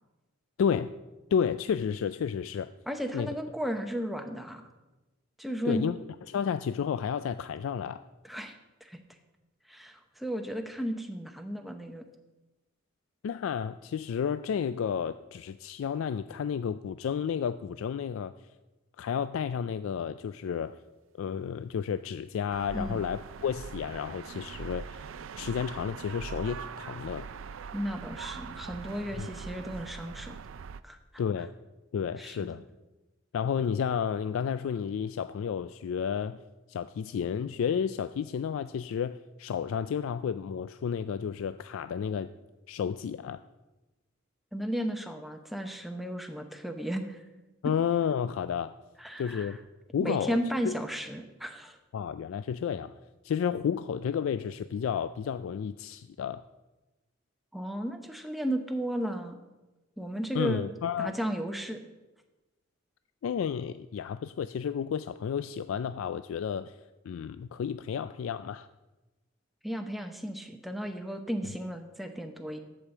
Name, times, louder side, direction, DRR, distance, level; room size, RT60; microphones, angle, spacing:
voice 1, 0.6-0.9 1.3-2.7 3.1-3.3 5.6-6.0 6.3-8.0 13.2-18.3 19.0-20.8 21.2-25.0 25.4-27.3 29.2-29.3 31.2-31.5 31.9-32.6 33.3-36.4 36.7-42.3 42.7-43.4 47.6-48.7 49.2-49.6 49.9-50.4 50.6-50.7 51.9-52.9 53.2-56.4 60.3-61.1 63.2-66.8 67.0-68.7, left 7 dB, 80° left, 12 dB, 0.3 m, -31 dB
voice 2, 2.9-4.6 5.4-5.9 8.2-8.5 8.8-9.0 9.7-12.0 22.7-23.0 27.7-30.4 30.8-31.0 32.2-32.6 44.5-47.2 49.0-49.6 50.0-51.8 57.5-59.4 60.0-60.7 61.0-61.8 69.6-72.6, equal, ahead, 5 dB, 0.8 m, -34 dB
sound 1, 22.5-30.8, right 6 dB, 75° right, 0.4 m, -42 dB
11.5 x 5.1 x 7.1 m, 1.1 s
head